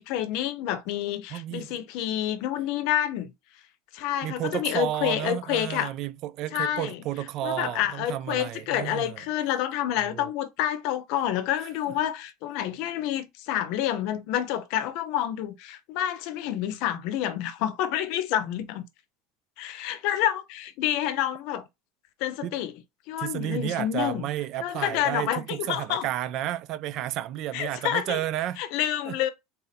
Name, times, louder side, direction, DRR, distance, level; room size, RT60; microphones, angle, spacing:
voice 1, 0.0-3.3 3.9-5.9 6.5-7.0 7.4-18.9 19.6-21.6 22.2-22.7 23.1-24.2 24.6-26.0 27.5-28.2 28.6-29.3, left 11 dB, 60° left, 0.7 m, -28 dB
voice 2, 1.3-1.8 4.2-9.2 10.1-10.3 11.6-11.7 22.4-22.5 23.2-28.6 29.1-29.2, right 13 dB, 45° right, 0.3 m, -32 dB
4.0 x 2.6 x 4.1 m
supercardioid pair, 145°, 0 cm